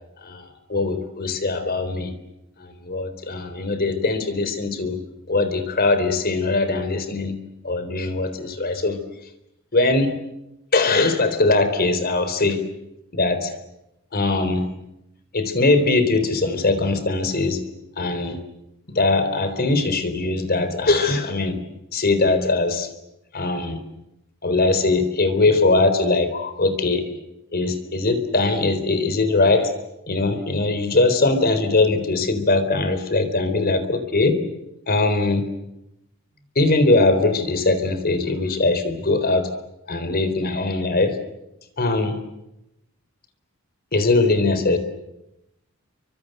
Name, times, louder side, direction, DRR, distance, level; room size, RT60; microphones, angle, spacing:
voice 1, 0.2-2.1 2.6-5.0 5.3-7.3 7.6-9.0 9.7-10.1 10.7-12.6 13.1-13.5 14.1-14.7 15.3-17.6 18.0-18.4 18.9-21.6 21.9-22.9 23.3-23.8 24.4-27.1 27.5-29.7 30.1-34.4 34.9-35.4 36.6-39.5 39.9-41.2 41.8-42.2 43.9-44.8, left 3 dB, 45° left, 10 dB, 4.0 m, -21 dB
29.5 x 25.5 x 8.0 m, 0.89 s
head